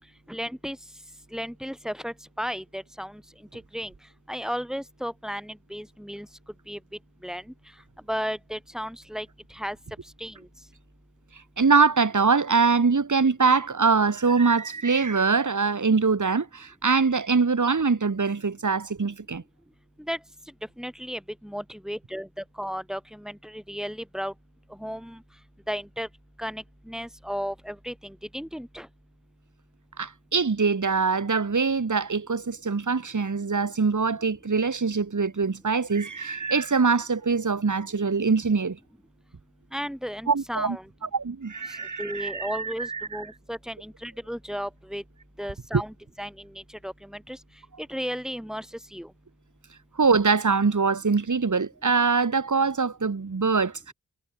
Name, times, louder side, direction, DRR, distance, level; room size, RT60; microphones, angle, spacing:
voice 1, 0.3-0.8 1.3-3.2 3.5-3.9 4.3-6.3 6.7-6.8 7.2-7.4 8.1-9.8 10.2-10.4 20.1-20.2 20.8-24.3 24.7-25.2 25.7-26.1 26.4-28.9 39.7-40.9 42.0-45.0 45.4-47.4 47.8-48.7 48.9-49.1, equal, ahead, 5.3 m, -34 dB
voice 2, 11.3-19.4 30.0-38.8 40.3-40.8 41.0-43.3 50.0-53.9, right 4 dB, 55° right, 1.7 m, -23 dB
cardioid pair, 40°, 36 cm